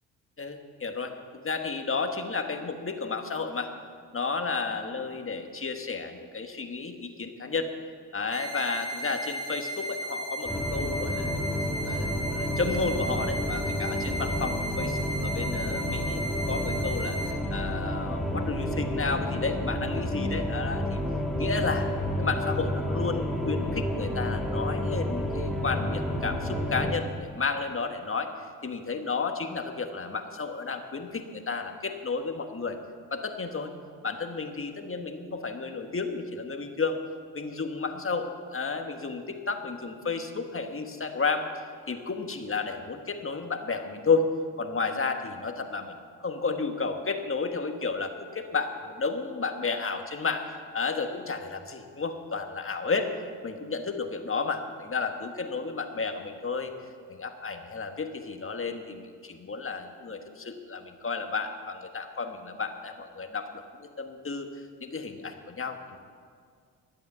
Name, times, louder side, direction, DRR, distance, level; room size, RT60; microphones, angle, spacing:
voice 1, 0.4-3.7 4.1-7.7 8.1-11.4 11.8-17.2 17.5-21.0 21.4-21.9 22.2-28.3 28.6-32.8 33.1-33.7 34.0-37.0 37.3-41.5 41.9-44.3 44.6-53.1 53.4-56.7 57.1-64.5 64.8-66.0, left 4 dB, 35° left, 5 dB, 1.6 m, -32 dB
sound 1, 8.3-17.3, right 1 dB, 75° right, 2.4 m, -35 dB
sound 2, 10.5-26.9, equal, ahead, 2.1 m, -30 dB
13.0 x 8.4 x 8.2 m, 2.1 s
supercardioid pair, 60°, 39 cm